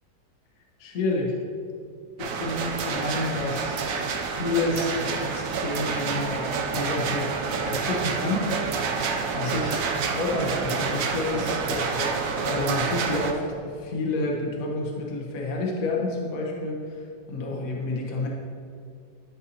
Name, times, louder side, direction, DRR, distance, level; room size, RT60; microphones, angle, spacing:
voice 1, 0.8-1.4 2.2-3.9 4.3-8.8 9.3-9.9 10.1-16.8 17.3-18.3, left 2 dB, 55° left, -2 dB, 1.2 m, -29 dB
sound 1, 2.2-13.3, right 5 dB, 80° right, 0.7 m, -28 dB
11.0 x 5.3 x 2.8 m, 2.3 s
omnidirectional pair, 2.1 m